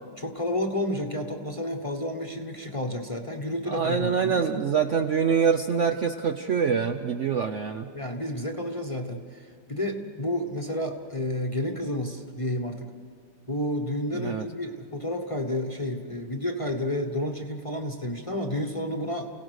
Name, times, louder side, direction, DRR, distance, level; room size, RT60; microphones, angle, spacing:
voice 1, 0.2-4.5 7.9-12.9 13.5-19.3, left 1 dB, 20° left, 3 dB, 1.0 m, -31 dB
voice 2, 3.7-7.9 14.1-14.5, right 6 dB, 60° right, 4 dB, 0.8 m, -25 dB
30.0 x 17.0 x 6.4 m, 2.1 s
omnidirectional pair, 1.9 m